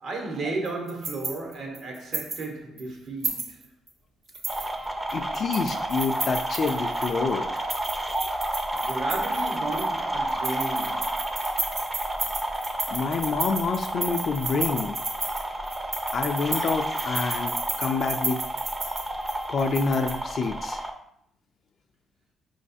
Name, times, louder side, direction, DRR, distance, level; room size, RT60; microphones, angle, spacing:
voice 1, 0.0-3.7 8.7-11.2, right 3 dB, 65° right, 1.1 m, -34 dB
sound 1, 0.6-2.5 2.8-2.9 3.2-3.9 4.3-7.1 7.6-10.0 10.3-20.1, right 3 dB, 50° right, 1.0 m, -33 dB
sound 2, 4.5-20.9, right 1 dB, 15° right, 0.5 m, -31 dB
voice 2, 5.1-7.5 12.9-15.0 16.1-18.4 19.5-20.8, left 4 dB, 55° left, 0.4 m, -27 dB
4.9 x 3.1 x 2.7 m
cardioid pair, 90°, 0 cm